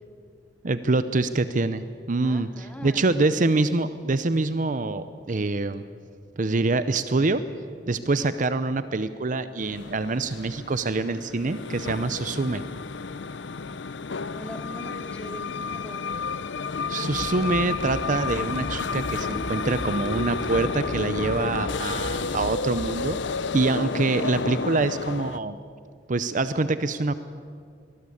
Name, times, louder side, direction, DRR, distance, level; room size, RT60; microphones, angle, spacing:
voice 1, 0.6-5.8 6.4-7.4 7.9-12.6 16.9-23.2 23.5-25.6 26.1-27.1, right 3 dB, 45° right, 12 dB, 0.7 m, -25 dB
voice 2, 2.2-3.8 13.8-16.1, equal, 10° left, 4 dB, 2.4 m, -43 dB
sound 1, 9.6-25.4, left 4 dB, 75° left, 0.7 m, -31 dB
sound 2, 17.1-23.0, equal, 80° right, 6.1 m, -38 dB
23.5 x 19.5 x 8.5 m, 2.1 s
head